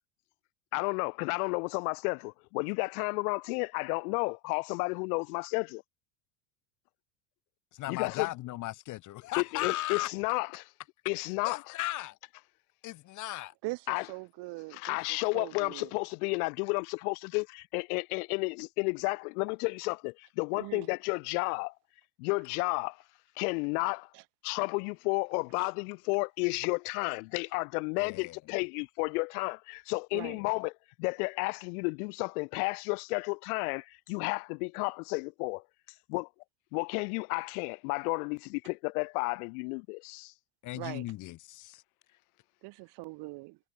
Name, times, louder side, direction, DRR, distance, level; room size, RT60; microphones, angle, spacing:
voice 1, 0.7-5.8 7.9-8.3 9.4-10.7 11.1-11.8 13.9-14.1 14.7-21.7 22.2-23.0 23.4-24.1 24.4-30.7 31.0-35.6 36.1-36.2 36.7-40.0, left 31 dB, 65° left, 0.6 m, -32 dB
voice 2, 7.7-10.1 11.4-12.2 12.8-13.5 28.0-28.4 30.2-30.3 40.7-41.8, left 16 dB, 35° left, 1.2 m, -36 dB
voice 3, 13.6-15.9 20.5-20.9 24.1-24.2 25.6-25.7 30.1-30.4 40.7-41.1 42.6-43.6, right 24 dB, 50° right, 4.1 m, -42 dB
supercardioid pair, 150°, 49 cm